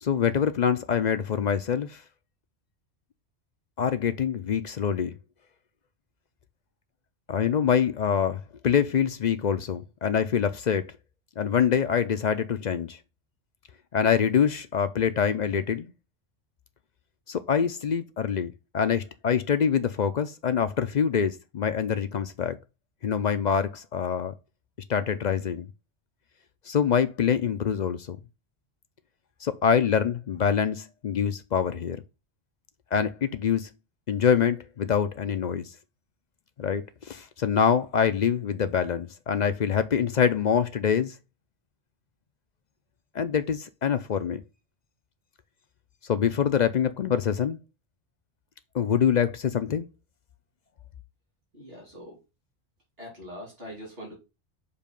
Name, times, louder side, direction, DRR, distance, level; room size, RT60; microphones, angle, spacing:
voice 1, 0.0-2.0 3.8-5.2 7.3-10.9 11.4-13.0 13.9-15.9 17.3-22.6 23.0-24.3 24.9-25.7 26.7-28.2 29.4-32.0 32.9-33.7 34.1-35.6 36.6-41.2 43.1-44.4 46.1-47.6 48.7-49.9, left 7 dB, 55° left, 0.5 m, -25 dB
voice 2, 51.5-52.2 53.0-54.1, equal, 60° right, 2.8 m, -42 dB
6.8 x 2.8 x 5.2 m
omnidirectional pair, 1.1 m